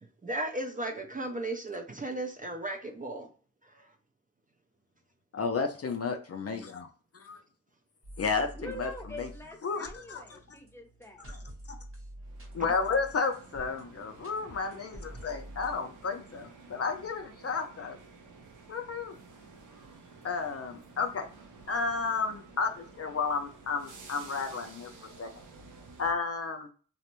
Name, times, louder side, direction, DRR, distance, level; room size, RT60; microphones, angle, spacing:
voice 1, 0.2-3.3 3.6-3.9, right 1 dB, 30° right, 0.4 m, -35 dB
voice 2, 5.3-6.9 7.3-7.4 8.2-8.9 9.2-9.3 9.6-10.4 11.3-11.4 11.7-11.8 12.5-18.0 18.7-19.1 20.2-21.3 21.7-24.9 25.2-25.3 26.0-26.7, left 4 dB, 50° left, 0.4 m, -32 dB
sound 1, 8.0-15.8, right 1 dB, 45° right, 0.9 m, -48 dB
voice 3, 8.5-11.3, equal, 10° left, 0.7 m, -45 dB
sound 2, 12.2-26.1, right 4 dB, 80° right, 0.6 m, -52 dB
2.5 x 2.0 x 2.9 m
cardioid pair, 55°, 30 cm